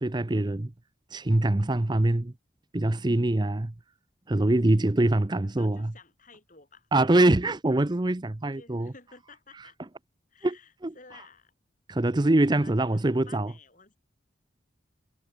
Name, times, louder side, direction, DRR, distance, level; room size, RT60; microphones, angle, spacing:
voice 1, 0.0-0.7 1.1-2.3 2.7-3.7 4.3-5.9 6.9-8.9 10.4-10.6 10.8-10.9 11.9-13.5, right 1 dB, 25° right, 0.6 m, -24 dB
voice 2, 5.4-6.9 8.5-9.8 10.3-11.5 12.2-14.0, left 4 dB, 40° left, 5.6 m, -53 dB
head